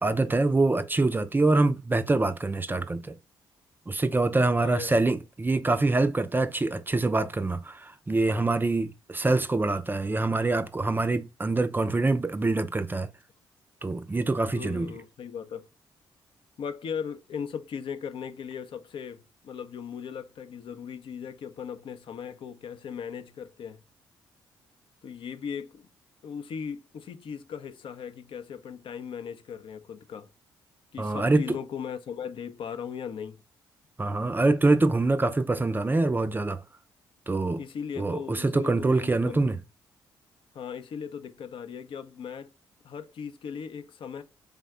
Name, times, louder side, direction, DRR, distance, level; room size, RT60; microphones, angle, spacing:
voice 1, 0.0-3.1 3.9-13.1 13.8-14.9 31.0-31.6 34.0-36.6 37.3-37.6 38.0-39.6, right 2 dB, 20° right, 0.4 m, -25 dB
voice 2, 4.6-5.0 14.5-15.7 16.6-23.8 25.0-25.9 26.2-30.3 30.9-33.4 37.6-39.4 40.5-42.5 42.8-44.2, left 7 dB, 55° left, 0.5 m, -38 dB
3.5 x 2.1 x 3.5 m
hypercardioid pair, 45°, 10 cm